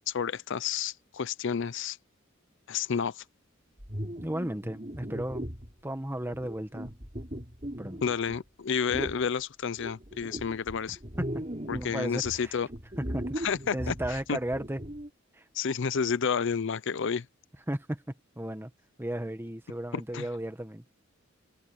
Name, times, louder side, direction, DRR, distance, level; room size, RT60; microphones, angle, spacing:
voice 1, 0.1-2.0 2.7-3.2 8.0-11.0 11.7-12.7 13.4-14.4 15.5-17.3 20.1-20.3, left 6 dB, 65° left, 0.6 m, -30 dB
sound 1, 3.8-5.7 6.3-8.4 8.9-9.2 9.8-12.0 12.2-15.1, equal, 30° right, 6.1 m, -38 dB
voice 2, 4.2-5.5 5.8-6.9 7.8-8.0 10.9-11.4 11.7-12.6 13.1-13.4 13.7-14.8 15.3-15.4 17.7-18.0 18.3-18.7 19.0-20.8, right 1 dB, 10° right, 1.6 m, -34 dB
head